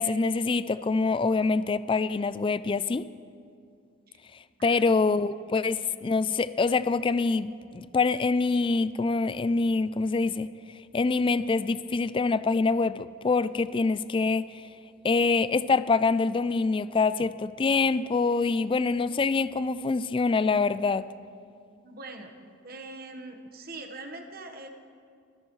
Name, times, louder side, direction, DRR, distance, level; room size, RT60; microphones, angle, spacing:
voice 1, 0.0-3.1 4.6-10.5 10.9-14.6 15.0-21.1, left 4 dB, 25° left, 15 dB, 0.3 m, -25 dB
voice 2, 21.8-24.7, right 2 dB, 50° right, 5 dB, 1.3 m, -43 dB
25.5 x 14.0 x 3.2 m, 2.4 s
head